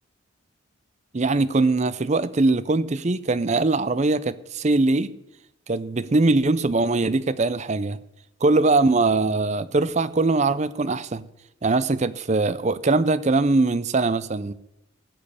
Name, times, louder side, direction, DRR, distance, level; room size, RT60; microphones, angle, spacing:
voice 1, 1.1-5.1 5.7-8.0 8.4-11.2 11.6-14.5, right 3 dB, 35° right, 0.5 m, -21 dB
15.0 x 5.3 x 8.6 m
head